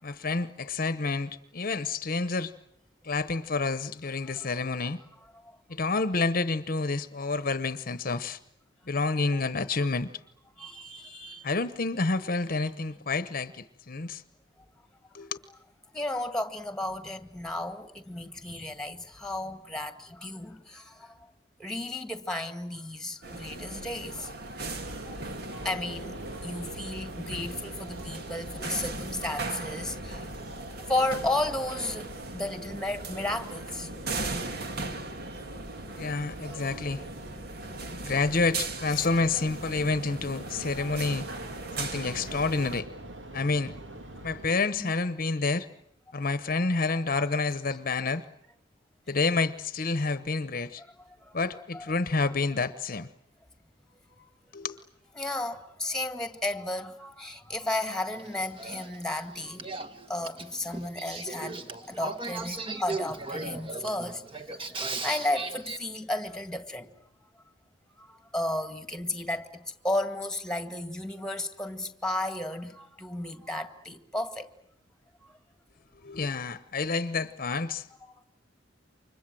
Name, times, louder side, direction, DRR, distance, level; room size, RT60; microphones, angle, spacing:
voice 1, 0.0-2.5 3.0-5.0 5.7-8.4 8.9-10.1 11.4-14.2 15.1-15.3 36.0-37.0 38.0-41.3 41.8-42.9 43.3-43.7 44.2-45.7 46.1-48.2 49.1-50.8 51.3-53.1 54.5-54.8 76.0-77.9, left 3 dB, 50° left, 1.0 m, -29 dB
voice 2, 10.6-11.5 15.9-21.3 21.6-24.3 25.0-25.2 25.5-30.3 30.8-33.9 35.9-36.0 36.6-36.7 38.9-39.1 40.8-40.9 41.3-41.4 41.7-42.0 44.8-44.9 50.8-50.9 51.2-51.4 51.7-51.9 54.2-54.3 55.2-59.7 60.1-66.9 68.0-74.5 75.2-75.3 78.0-78.1, left 1 dB, 5° left, 1.8 m, -34 dB
sound 1, 23.2-42.8, right 3 dB, 55° right, 2.0 m, -39 dB
sound 2, 24.7-44.5, right 1 dB, 85° right, 2.5 m, -44 dB
Male speech man speaking / Female speech woman speaking / Conversation, 58.1-65.8, right 3 dB, 30° right, 1.5 m, -37 dB
29.5 x 25.0 x 7.7 m
head